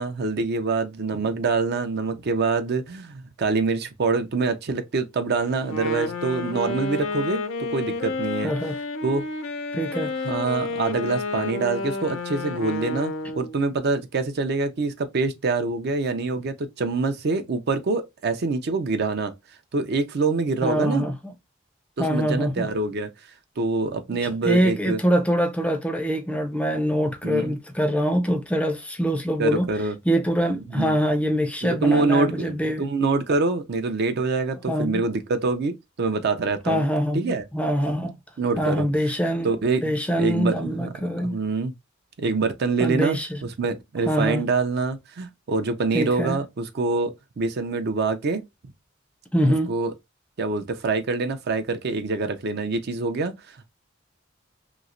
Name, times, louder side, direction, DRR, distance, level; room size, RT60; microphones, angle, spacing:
voice 1, 0.0-7.4 7.7-8.5 9.0-9.2 10.2-19.3 19.7-21.1 22.0-23.1 23.6-25.0 27.2-27.5 29.4-30.0 30.8-31.0 31.6-36.8 37.1-37.4 38.4-38.9 39.4-40.9 41.2-41.7 42.2-43.2 43.6-48.4 49.4-49.9 50.4-53.7, right 3 dB, 55° right, 0.5 m, -25 dB
Wind instrument woodwind instrument, 5.6-13.6, left 3 dB, 75° left, 0.6 m, -30 dB
voice 2, 8.4-8.8 9.7-10.1 20.6-21.1 22.0-22.7 24.4-29.7 30.1-32.8 34.7-35.1 36.7-38.2 38.6-39.5 39.8-41.4 42.8-43.4 44.1-44.4 45.9-46.4 49.3-49.7, equal, 5° left, 0.5 m, -24 dB
3.0 x 2.8 x 2.5 m
head